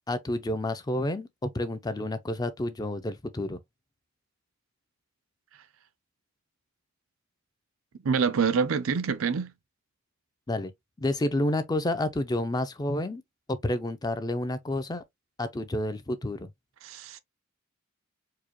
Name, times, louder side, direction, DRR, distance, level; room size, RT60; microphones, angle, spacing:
voice 1, 0.1-3.6 10.5-10.7 11.0-13.2 13.5-15.0 15.4-16.5, left 1 dB, 20° left, 0.4 m, -29 dB
voice 2, 8.0-9.5 16.8-17.2, right 6 dB, 75° right, 0.5 m, -26 dB
4.7 x 2.1 x 2.9 m
head